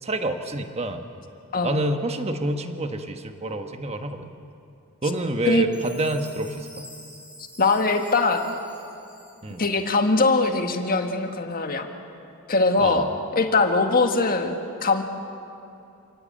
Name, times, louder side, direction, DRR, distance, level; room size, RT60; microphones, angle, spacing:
voice 1, 0.0-1.0 1.6-4.3 5.0-6.9 9.4-9.6 12.8-13.1, right 2 dB, 30° right, 6 dB, 1.3 m, -27 dB
Chime, 5.7-9.9, left 1 dB, 5° right, 5.1 m, -47 dB
voice 2, 7.6-8.6 9.6-11.9 12.5-13.1 13.4-14.6 14.8-15.0, left 3 dB, 40° left, 5 dB, 1.8 m, -21 dB
28.0 x 18.0 x 8.8 m, 2.6 s
head